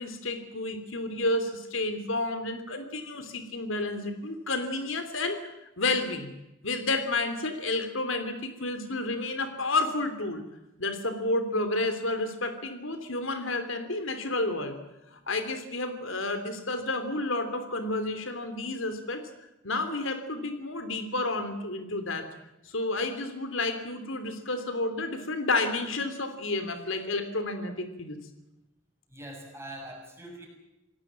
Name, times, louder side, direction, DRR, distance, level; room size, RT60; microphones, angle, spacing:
voice 1, 0.0-5.4 5.8-6.3 6.6-10.4 10.8-14.8 15.1-19.2 19.6-22.3 22.7-28.2, left 2 dB, 85° left, 9 dB, 3.3 m, -30 dB
voice 2, 29.1-30.5, right 1 dB, 15° right, 2 dB, 7.1 m, -43 dB
27.5 x 17.5 x 7.6 m, 0.94 s
head